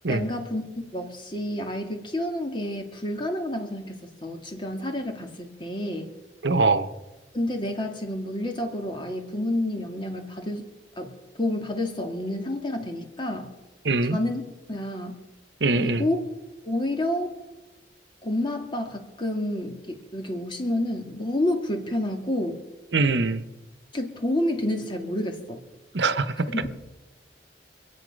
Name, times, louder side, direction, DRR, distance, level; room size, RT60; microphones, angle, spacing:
voice 1, 0.1-0.6 0.9-6.1 7.3-10.7 11.0-11.1 11.4-13.5 14.1-14.4 14.7-15.2 15.8-16.2 16.6-17.3 18.2-22.6 23.9-25.6 26.5-26.7, left 1 dB, 30° left, 4 dB, 2.0 m, -29 dB
voice 2, 6.4-6.9 13.8-14.2 15.6-16.0 22.9-23.4 25.9-26.5, right 3 dB, 80° right, 12 dB, 0.9 m, -22 dB
26.0 x 8.6 x 5.3 m, 1.1 s
head